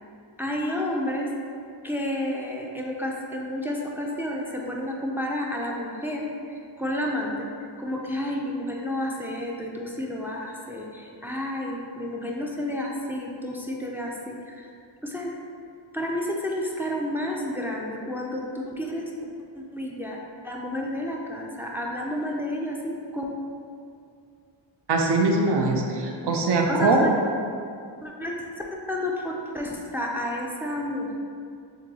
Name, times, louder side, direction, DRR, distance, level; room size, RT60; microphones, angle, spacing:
voice 1, 0.4-1.3 1.8-7.5 7.8-14.7 15.0-15.3 15.9-19.0 19.5-20.2 20.4-23.2 26.7-27.1 28.0-31.1, left 1 dB, 5° right, -2 dB, 0.3 m, -30 dB
voice 2, 24.9-27.0, right 3 dB, 65° right, 1 dB, 0.7 m, -22 dB
6.9 x 2.6 x 2.7 m, 2.4 s
wide cardioid pair, 135°, 44 cm